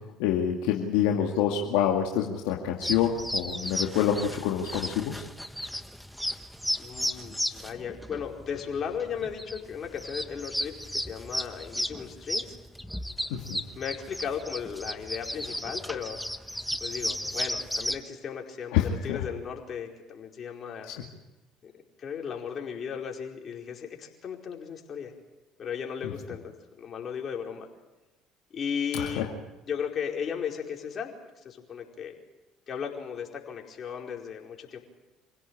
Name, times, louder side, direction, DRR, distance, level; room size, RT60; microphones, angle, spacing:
voice 1, 0.2-5.2 13.3-13.6 18.7-19.2 20.9-21.0 26.0-26.1 28.9-29.2, left 9 dB, 80° left, 1 dB, 2.2 m, -27 dB
sound 1, 2.8-18.0, equal, ahead, 1.3 m, -34 dB
voice 2, 6.8-12.6 13.7-16.2 16.8-20.9 21.6-21.7 22.0-25.1 25.6-27.7 28.5-29.3 29.7-31.1 31.4-32.2 32.7-34.8, left 7 dB, 45° left, 1 dB, 4.8 m, -36 dB
26.5 x 16.5 x 9.0 m, 1.0 s
hypercardioid pair, 75°, 0 cm